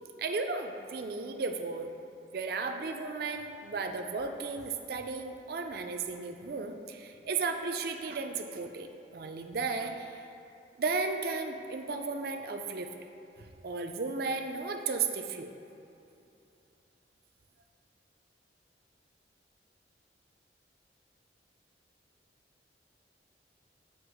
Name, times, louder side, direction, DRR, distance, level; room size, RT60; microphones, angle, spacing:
voice 1, 0.2-1.9 2.3-10.1 10.8-12.9 13.4-15.5, right 4 dB, 55° right, 5 dB, 0.4 m, -34 dB
8.0 x 2.9 x 4.7 m, 2.8 s
head